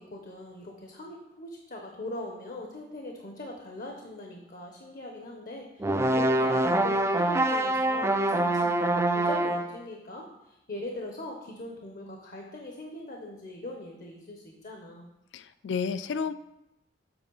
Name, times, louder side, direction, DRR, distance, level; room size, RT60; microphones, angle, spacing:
voice 1, 0.0-15.1, left 1 dB, 50° left, 2 dB, 0.8 m, -41 dB
sound 1, 5.8-9.8, right 1 dB, 15° right, 0.3 m, -25 dB
voice 2, 15.3-16.3, left 6 dB, 80° left, 14 dB, 0.3 m, -31 dB
7.9 x 4.8 x 3.9 m, 0.89 s
head